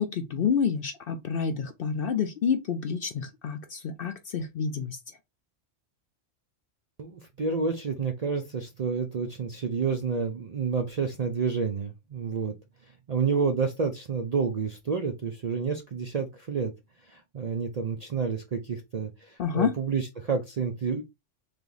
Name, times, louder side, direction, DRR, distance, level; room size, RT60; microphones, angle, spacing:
voice 1, 0.0-5.0 19.4-19.7, left 6 dB, 60° left, 0.6 m, -28 dB
voice 2, 7.0-12.5 13.1-16.7 17.1-21.0, right 5 dB, 50° right, 0.4 m, -29 dB
3.3 x 2.9 x 3.8 m
omnidirectional pair, 1.3 m